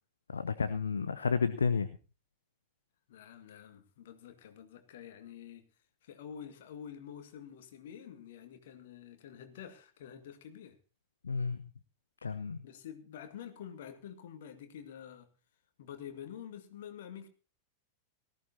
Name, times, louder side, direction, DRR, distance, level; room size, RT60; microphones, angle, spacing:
voice 1, 0.3-1.9 11.2-11.6 12.2-12.6, left 5 dB, 70° left, 0.7 m, -31 dB
voice 2, 3.1-5.7 6.0-10.8 12.6-15.3 15.8-17.3, left 9 dB, 55° left, 2.0 m, -48 dB
18.5 x 14.5 x 2.9 m
figure-of-eight pair, 90°, 0 cm